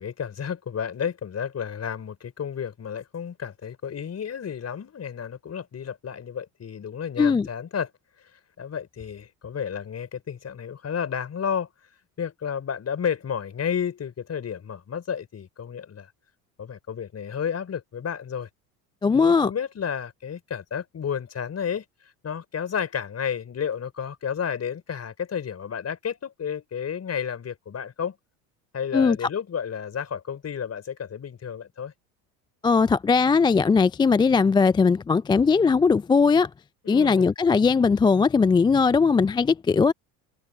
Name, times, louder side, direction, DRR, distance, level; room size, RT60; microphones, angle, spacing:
voice 1, 0.0-7.9 8.6-11.7 12.2-16.1 16.6-18.5 19.1-21.8 22.2-28.2 28.7-31.9 36.8-37.3, left 7 dB, 35° left, 4.9 m, -31 dB
voice 2, 19.0-19.5 28.9-29.2 32.6-36.5 36.9-39.9, left 5 dB, 10° left, 0.4 m, -19 dB
open air
hypercardioid pair, 70°, 46 cm